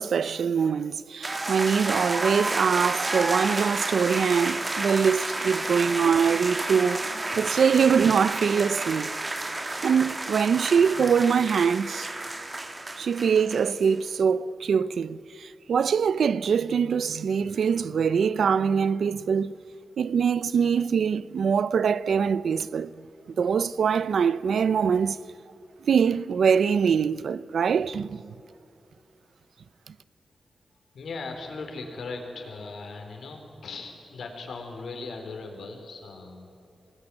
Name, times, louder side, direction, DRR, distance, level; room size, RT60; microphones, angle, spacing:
voice 1, 0.0-7.1 7.4-9.2 9.8-12.1 13.0-19.5 20.0-22.9 23.4-25.2 25.9-28.3, right 6 dB, 80° right, 0.6 m, -23 dB
sound 1, 1.2-13.9, right 2 dB, 25° right, 2.3 m, -31 dB
voice 2, 30.9-36.5, left 3 dB, 80° left, 4.1 m, -38 dB
26.0 x 19.5 x 9.9 m
wide cardioid pair, 95°, 0 cm